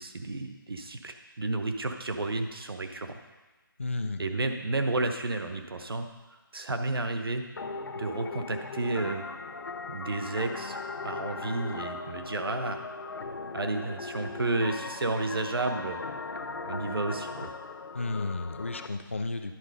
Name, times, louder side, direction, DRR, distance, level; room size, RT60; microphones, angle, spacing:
voice 1, 0.0-3.1 4.2-6.1 6.5-7.4 7.9-9.2 9.9-10.8 11.0-12.8 13.5-16.0 16.6-17.5, right 2 dB, 80° right, 6 dB, 0.9 m, -31 dB
voice 2, 3.8-4.2 17.9-19.5, left 3 dB, 35° left, 8 dB, 0.4 m, -32 dB
sound 1, 7.6-18.9, left 4 dB, 70° left, 0.6 m, -38 dB
11.0 x 4.2 x 5.3 m, 1.2 s
hypercardioid pair, 180°, 12 cm